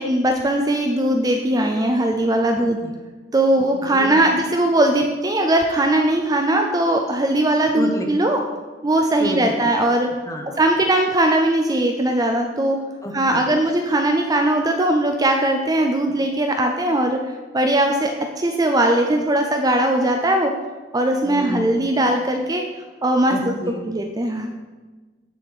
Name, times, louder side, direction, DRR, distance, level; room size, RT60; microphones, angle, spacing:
voice 1, 0.0-2.8 3.3-8.4 8.8-10.1 10.6-12.8 13.1-17.2 17.5-18.1 18.4-20.5 20.9-22.6 23.0-23.5 23.9-24.5, right 1 dB, 20° right, 3 dB, 0.4 m, -19 dB
voice 2, 2.6-2.9 3.8-4.3 7.7-8.1 9.2-9.4 10.3-10.6 13.0-13.5 21.2-21.8 23.3-23.8, left 1 dB, 15° left, 2 dB, 0.8 m, -30 dB
9.7 x 3.5 x 4.8 m, 1.3 s
head